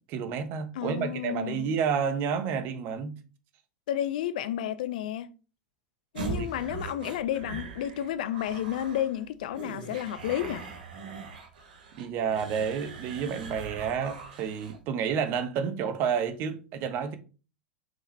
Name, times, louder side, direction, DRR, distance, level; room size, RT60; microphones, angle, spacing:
voice 1, 0.1-3.2 6.3-6.5 11.9-17.2, right 7 dB, 45° right, 1.1 m, -30 dB
voice 2, 0.7-1.6 3.9-5.3 6.1-10.6, left 11 dB, 65° left, 0.5 m, -31 dB
sound 1, 6.2-14.8, right 4 dB, 70° right, 1.3 m, -41 dB
6.1 x 4.9 x 3.2 m
figure-of-eight pair, 85°, 5 cm